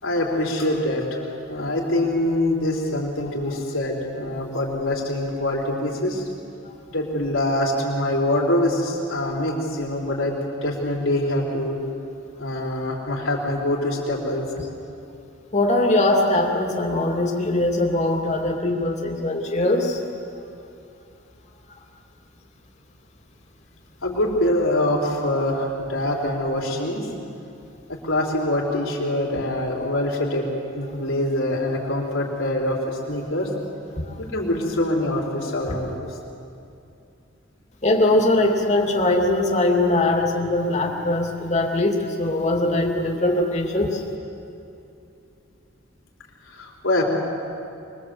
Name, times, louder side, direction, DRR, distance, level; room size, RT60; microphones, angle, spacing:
voice 1, 0.0-1.2 1.5-6.3 6.9-11.8 12.4-14.5 24.0-27.1 27.9-30.5 30.7-33.5 34.2-36.1 46.4-47.0, left 1 dB, 90° left, -2 dB, 4.6 m, -24 dB
voice 2, 15.5-20.0 34.1-34.2 37.8-44.0, left 2 dB, 35° left, 1 dB, 2.8 m, -21 dB
24.5 x 23.0 x 8.0 m, 2.7 s
head